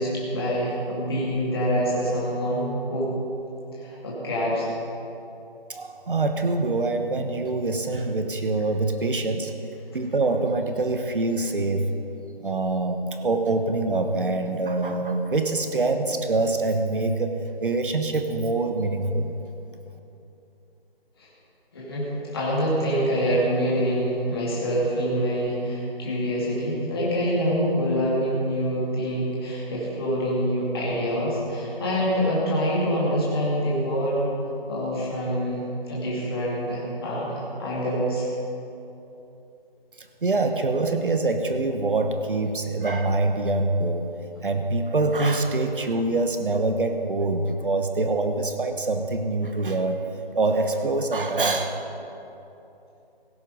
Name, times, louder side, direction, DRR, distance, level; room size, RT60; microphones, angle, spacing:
voice 1, 0.0-3.1 3.7-4.7 21.2-21.3 21.7-34.3 34.7-38.3, equal, 25° left, -6 dB, 2.3 m, -25 dB
voice 2, 5.7-9.5 9.9-11.9 12.4-17.3 17.6-19.3 40.2-44.1 44.4-50.0 50.3-51.8, right 2 dB, 60° right, 6 dB, 1.1 m, -25 dB
16.5 x 9.1 x 5.3 m, 2.9 s
figure-of-eight pair, 170°, 30 cm